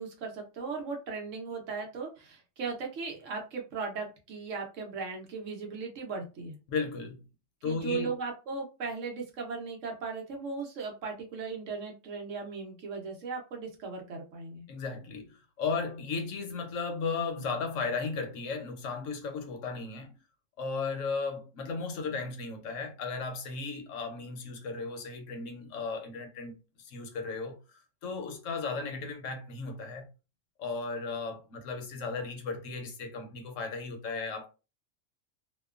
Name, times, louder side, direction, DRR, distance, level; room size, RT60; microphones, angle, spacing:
voice 1, 0.0-6.6 7.6-14.7, right 4 dB, 75° right, 1.2 m, -37 dB
voice 2, 6.7-7.2 7.6-8.1 14.7-20.1 20.6-27.6 28.0-30.1 30.6-34.5, left 4 dB, 75° left, 1.1 m, -35 dB
2.9 x 2.2 x 2.3 m
omnidirectional pair, 1.3 m